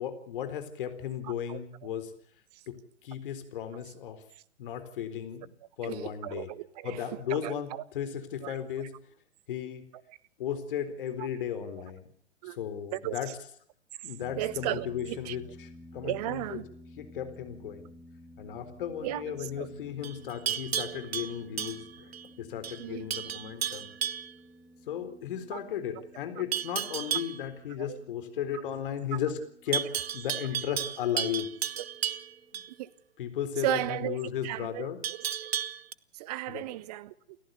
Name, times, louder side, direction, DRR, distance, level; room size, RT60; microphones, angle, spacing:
voice 1, 0.0-2.1 2.7-4.2 4.6-5.5 5.8-6.5 6.8-8.9 9.5-9.8 10.4-12.1 12.4-13.3 14.0-16.6 17.0-17.9 18.4-23.9 24.9-29.4 29.6-31.5 32.5-32.6 33.2-35.0 36.5-36.6, left 9 dB, 50° left, 4.1 m, -35 dB
voice 2, 5.8-7.0 7.3-7.8 8.4-8.6 10.1-10.2 12.4-12.6 12.9-13.2 14.3-15.4 16.0-16.6 19.0-19.7 22.8-23.1 25.5-25.6 27.8-28.0 29.1-29.2 32.8-32.9 33.6-34.2 34.4-34.9 35.4-35.5 36.1-37.1, right 15 dB, 35° right, 1.2 m, -35 dB
sound 1, 14.2-32.6, left 1 dB, 5° left, 1.4 m, -54 dB
Livestock farm animals working animals, 20.0-22.3 22.6-22.8 23.1-24.3 26.5-27.4 29.7-32.7 35.0-35.9, right 9 dB, 60° right, 1.0 m, -33 dB
29.0 x 14.5 x 6.9 m
figure-of-eight pair, 115°, 34 cm